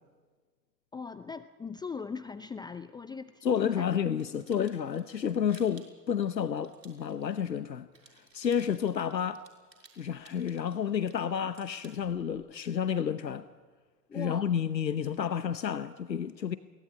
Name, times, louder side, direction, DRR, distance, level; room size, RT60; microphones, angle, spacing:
voice 1, 0.9-4.0 14.1-14.5, left 5 dB, 10° left, 0.6 m, -40 dB
voice 2, 3.4-7.9 8.3-9.4 10.0-13.4 14.1-16.6, left 8 dB, 85° left, 1.0 m, -30 dB
sound 1, 4.2-7.6 7.9-12.4, right 3 dB, 85° right, 6.2 m, -58 dB
22.5 x 18.5 x 9.5 m
figure-of-eight pair, 95°, 49 cm